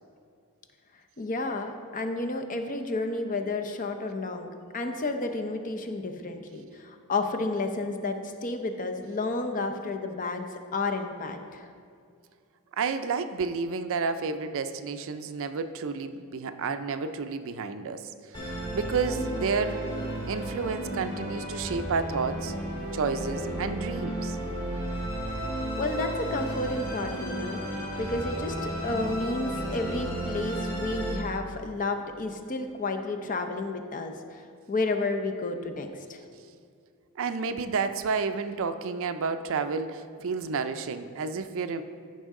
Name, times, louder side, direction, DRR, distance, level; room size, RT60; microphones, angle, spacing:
voice 1, 1.2-11.7 25.8-27.6 28.0-34.4 34.7-36.2, left 2 dB, 35° left, 5 dB, 0.7 m, -31 dB
voice 2, 12.8-18.1 18.4-19.8 20.3-22.5 22.9-24.4 37.2-41.8, right 5 dB, 65° right, 10 dB, 0.5 m, -30 dB
Musical instrument, 18.3-31.1, right 1 dB, 20° left, 2.4 m, -33 dB
14.0 x 5.5 x 3.7 m, 2.3 s
head